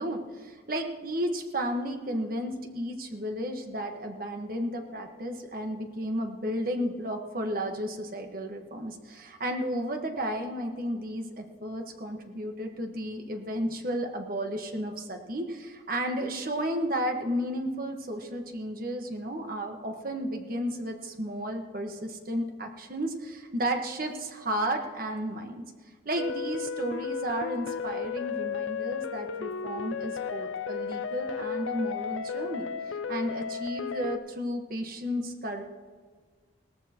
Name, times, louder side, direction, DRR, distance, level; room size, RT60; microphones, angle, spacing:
voice 1, 0.0-25.6 26.0-35.6, equal, 50° right, 4 dB, 1.4 m, -33 dB
sound 1, 26.2-34.2, left 6 dB, 85° left, 0.5 m, -34 dB
19.5 x 13.5 x 3.0 m, 1.5 s
head